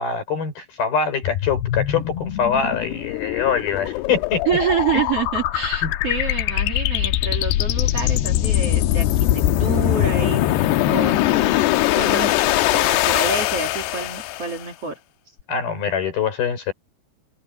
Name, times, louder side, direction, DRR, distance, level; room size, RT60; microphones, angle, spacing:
voice 1, 0.0-4.4 5.8-5.9 15.5-16.7, left 6 dB, 65° left, 7.0 m, -24 dB
sound 1, 1.2-14.6, left 14 dB, 85° left, 2.9 m, -21 dB
voice 2, 4.5-11.6 11.9-15.0, right 6 dB, 40° right, 2.9 m, -27 dB
omnidirectional pair, 4.8 m